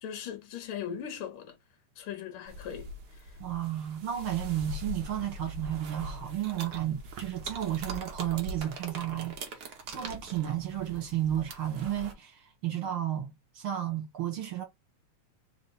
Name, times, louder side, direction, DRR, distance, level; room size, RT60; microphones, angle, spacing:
voice 1, 0.0-1.5 2.0-3.4, left 8 dB, 75° left, 1.2 m, -39 dB
sound 1, 2.5-12.1, right 2 dB, 80° right, 0.9 m, -42 dB
voice 2, 3.4-14.6, right 11 dB, 55° right, 1.7 m, -33 dB
4.3 x 3.0 x 4.0 m
omnidirectional pair, 3.3 m